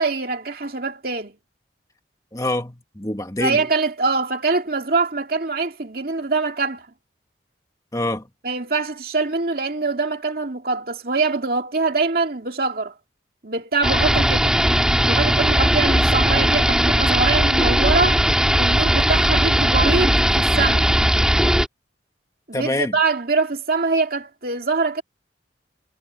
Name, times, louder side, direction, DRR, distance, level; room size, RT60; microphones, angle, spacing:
voice 1, 0.0-1.3 3.4-6.9 8.4-12.9 13.4-14.6 15.0-18.2 18.5-20.9 22.5-25.0, right 3 dB, 55° right, 2.6 m, -23 dB
voice 2, 2.3-3.6 7.9-8.2 22.5-23.0, left 1 dB, 20° left, 1.8 m, -25 dB
sound 1, 13.8-21.7, equal, 5° right, 2.2 m, -18 dB
head